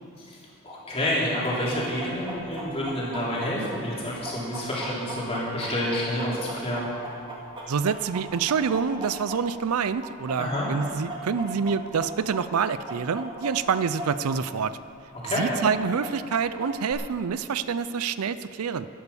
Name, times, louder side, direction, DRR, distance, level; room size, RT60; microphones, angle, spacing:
voice 1, 0.6-6.9 10.4-10.7 15.2-15.5, left 1 dB, 25° left, -6 dB, 3.7 m, -28 dB
Chicken rooster, 1.4-9.7 10.0-14.4 14.6-14.7 15.2-16.9, right 1 dB, 25° right, 2.2 m, -38 dB
voice 2, 7.7-14.7 15.4-18.9, right 6 dB, 80° right, 14 dB, 0.5 m, -27 dB
11.5 x 11.0 x 7.0 m, 2.6 s
head